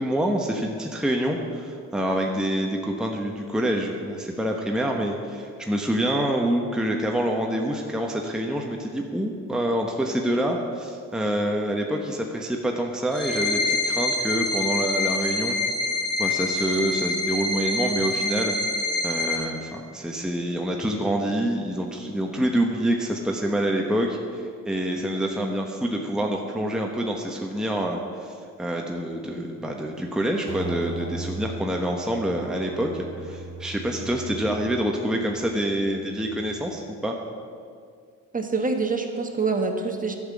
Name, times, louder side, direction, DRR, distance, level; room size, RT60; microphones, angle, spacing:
voice 1, 0.0-15.6 16.2-18.6 19.0-28.3 28.6-32.9 33.2-37.2, right 1 dB, ahead, 1 dB, 1.1 m, -26 dB
sound 1, 13.1-19.4, left 2 dB, 30° left, 2.5 m, -26 dB
sound 2, 30.5-37.0, right 3 dB, 60° right, 2.0 m, -39 dB
voice 2, 38.3-40.2, right 4 dB, 25° right, 4 dB, 1.3 m, -25 dB
11.0 x 5.9 x 8.4 m, 2.2 s
cardioid pair, 85°, 33 cm